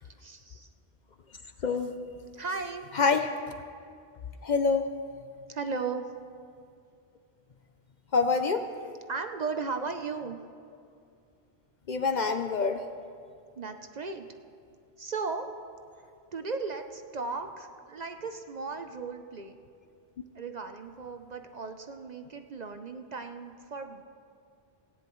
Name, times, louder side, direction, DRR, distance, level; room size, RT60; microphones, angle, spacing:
voice 1, 0.0-0.7 2.3-2.9 5.5-6.1 9.1-10.4 13.6-14.3 15.0-15.5 16.3-19.6 20.3-24.0, right 4 dB, 50° right, 7 dB, 0.6 m, -36 dB
voice 2, 2.9-3.3 4.4-4.9 8.1-8.6 11.9-12.9, left 4 dB, 55° left, 8 dB, 0.6 m, -26 dB
18.0 x 16.5 x 3.1 m, 2.4 s
omnidirectional pair, 1.1 m